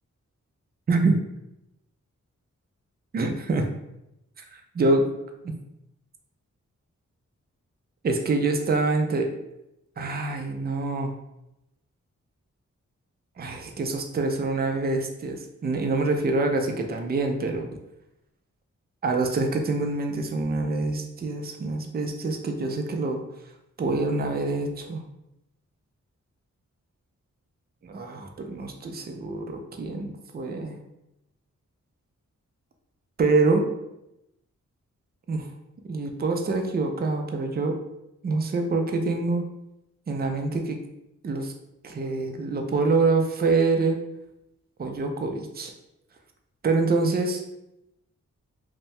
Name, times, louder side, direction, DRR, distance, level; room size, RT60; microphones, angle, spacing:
voice 1, 0.9-1.2 3.1-3.7 4.5-5.1 8.0-9.3 10.0-11.1 13.4-17.7 19.0-23.2 23.8-25.0 27.8-30.8 33.2-33.7 35.3-35.5 35.8-37.8 38.2-39.5 40.1-40.8 41.2-41.5 41.8-44.0 44.8-45.7 46.6-47.4, right 3 dB, 30° right, 4 dB, 0.4 m, -25 dB
2.6 x 2.1 x 3.1 m, 0.87 s
cardioid pair, 65°, 31 cm